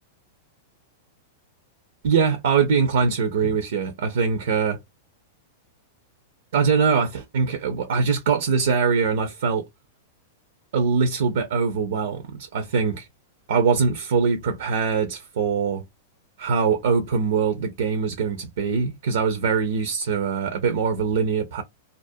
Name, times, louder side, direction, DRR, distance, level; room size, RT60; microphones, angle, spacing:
voice 1, 2.0-4.8 6.5-9.7 10.7-13.1 13.5-15.8 16.4-21.6, right 5 dB, 75° right, 0.6 m, -22 dB
2.4 x 2.1 x 2.5 m
hypercardioid pair, 125°, 0 cm